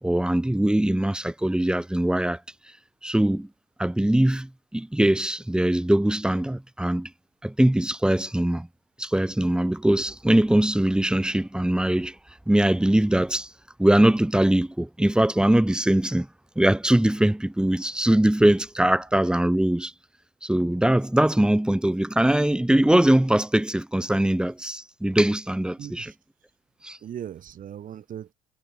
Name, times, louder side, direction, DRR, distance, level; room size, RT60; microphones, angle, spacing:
voice 1, 0.0-2.4 3.0-3.5 3.8-7.1 7.4-8.7 9.0-12.1 12.5-13.5 13.8-16.3 16.5-19.9 20.4-26.1 26.8-27.0, right 1 dB, 5° right, 1.6 m, -22 dB
voice 2, 25.8-26.2 27.0-28.3, right 9 dB, 55° right, 6.8 m, -38 dB
cardioid pair, 110°, 17 cm